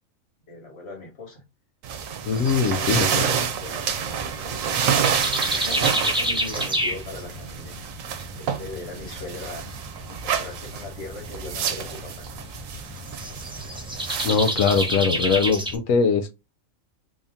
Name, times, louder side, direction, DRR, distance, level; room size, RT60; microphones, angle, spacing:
voice 1, 0.5-1.4 2.6-7.8 8.4-9.8 10.1-12.3, left 2 dB, 55° left, 1.8 m, -39 dB
sound 1, 1.8-15.5, right 8 dB, 85° right, 1.0 m, -29 dB
voice 2, 2.3-3.1 14.2-16.3, left 5 dB, 90° left, 1.0 m, -21 dB
sound 2, 2.3-15.8, equal, 5° right, 0.4 m, -31 dB
3.6 x 2.7 x 3.4 m
omnidirectional pair, 1.4 m